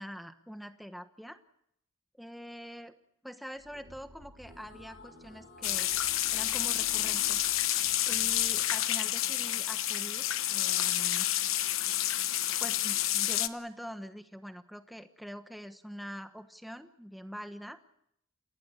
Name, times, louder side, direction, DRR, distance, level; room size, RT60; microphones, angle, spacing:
voice 1, 0.0-1.4 2.2-2.9 3.2-5.9 6.3-7.4 8.1-11.3 12.6-17.8, equal, ahead, 8 dB, 1.2 m, -44 dB
sound 1, 3.6-8.8, right 1 dB, 45° right, 5.0 m, -54 dB
sound 2, 4.4-8.8, left 1 dB, 50° left, 3.0 m, -55 dB
sound 3, 5.6-13.5, left 13 dB, 70° left, 1.0 m, -29 dB
29.0 x 16.5 x 8.1 m, 0.76 s
head